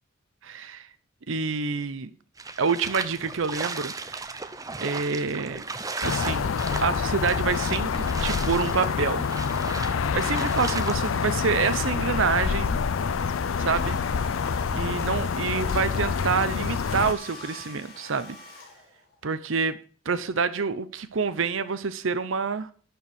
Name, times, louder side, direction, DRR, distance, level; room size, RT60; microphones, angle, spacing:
voice 1, 0.4-0.9 1.3-2.1 2.6-4.4 4.8-5.6 6.0-6.5 6.8-9.3 10.1-12.8 13.6-14.0 14.7-18.4 19.2-19.8 20.1-22.7, right 5 dB, 75° right, 0.7 m, -27 dB
sound 1, 2.4-11.0, right 3 dB, 15° right, 0.6 m, -36 dB
sound 2, 6.0-17.1, left 6 dB, 80° left, 0.5 m, -27 dB
Domestic sounds home sounds, 10.0-19.2, left 2 dB, 50° left, 4.0 m, -46 dB
11.5 x 4.7 x 6.8 m
head